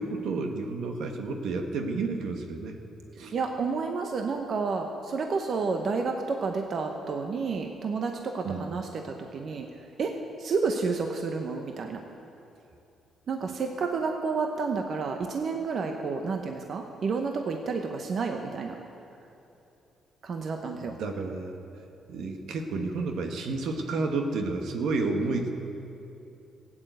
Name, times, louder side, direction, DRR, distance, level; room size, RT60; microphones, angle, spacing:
voice 1, 0.0-2.8 3.2-3.3 8.4-8.7 20.8-21.6 22.1-25.5, right 3 dB, 75° right, 4 dB, 1.4 m, -31 dB
voice 2, 3.3-9.0 9.3-9.7 10.0-10.1 10.4-12.0 13.3-18.8 20.2-20.9, right 4 dB, 55° right, 4 dB, 1.0 m, -30 dB
16.0 x 8.9 x 8.0 m, 2.8 s
cardioid pair, 90°, 0 cm